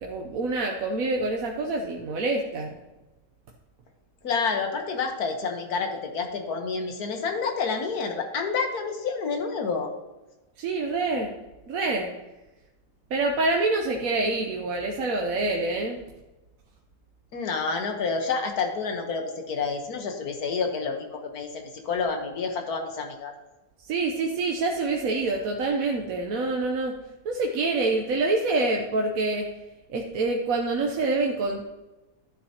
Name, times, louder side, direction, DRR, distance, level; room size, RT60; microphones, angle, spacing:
voice 1, 0.0-2.8 10.6-11.3 11.7-12.1 13.1-16.0 23.9-26.9 27.2-29.5 29.9-31.6, right 3 dB, 70° right, 1 dB, 1.2 m, -26 dB
voice 2, 4.2-9.9 17.3-23.3, left 5 dB, 85° left, 4 dB, 1.7 m, -29 dB
11.5 x 9.8 x 2.8 m, 1.1 s
omnidirectional pair, 1.6 m